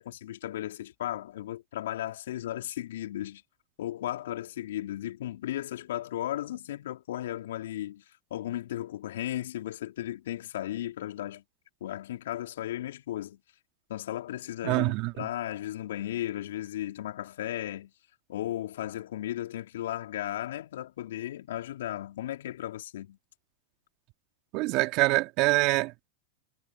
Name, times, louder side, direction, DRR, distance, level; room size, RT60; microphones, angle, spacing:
voice 1, 0.0-3.4 3.8-8.0 8.3-11.4 11.8-13.4 13.9-17.9 18.3-23.2, left 13 dB, 70° left, 4.5 m, -35 dB
voice 2, 14.6-15.3 24.5-26.1, right 23 dB, 50° right, 3.4 m, -25 dB
hypercardioid pair, 105°, 0 cm